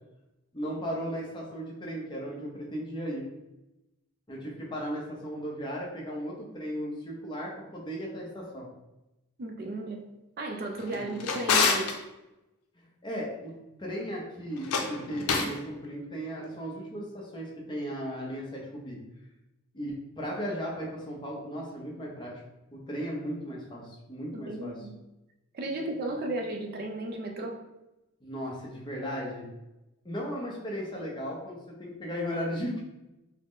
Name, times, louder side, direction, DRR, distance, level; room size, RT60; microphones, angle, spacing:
voice 1, 0.5-3.2 4.3-8.7 10.9-11.2 12.8-13.5 13.8-19.0 19.7-22.3 22.7-24.7 28.2-29.4 30.0-32.8, equal, 20° left, -3 dB, 0.7 m, -36 dB
voice 2, 9.4-10.0 10.4-11.9 24.3-24.9 25.5-27.6, right 2 dB, 45° right, 3 dB, 0.4 m, -34 dB
Drawer open or close, 10.8-12.0 14.5-15.6, left 5 dB, 90° left, 0.5 m, -27 dB
3.7 x 2.0 x 3.6 m, 0.96 s
head